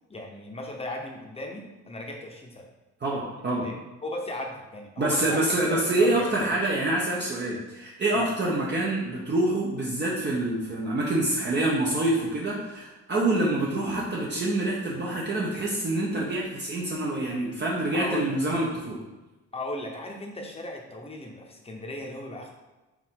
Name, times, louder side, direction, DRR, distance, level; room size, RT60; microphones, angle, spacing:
voice 1, 0.1-2.7 3.6-6.3 8.1-8.3 17.9-18.4 19.5-22.5, left 1 dB, 20° left, 1 dB, 0.9 m, -37 dB
voice 2, 3.0-3.7 5.0-19.0, right 2 dB, 35° right, -4 dB, 0.8 m, -26 dB
4.8 x 2.6 x 3.7 m, 1.1 s
cardioid pair, 90°, 30 cm